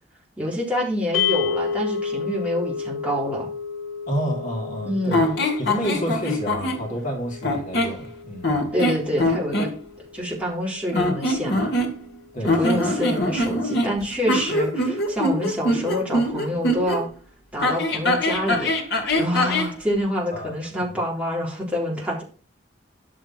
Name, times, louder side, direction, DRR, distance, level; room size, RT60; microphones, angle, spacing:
voice 1, 0.4-3.5 4.8-5.4 8.7-9.7 10.1-11.7 12.5-17.1 17.5-18.7 19.2-22.2, equal, 5° right, -4 dB, 3.8 m, -27 dB
sound 1, 1.1-11.4, left 6 dB, 90° left, 1.4 m, -32 dB
voice 2, 4.1-5.2 5.6-8.6 12.3-12.8 20.3-20.5 20.9-21.0, equal, 40° left, 0 dB, 3.1 m, -29 dB
sound 2, 5.1-6.8 7.4-8.0 8.4-9.7 10.9-12.1 12.4-17.0 17.6-19.7, left 1 dB, 55° left, 2.5 m, -23 dB
11.0 x 7.6 x 4.5 m, 0.39 s
head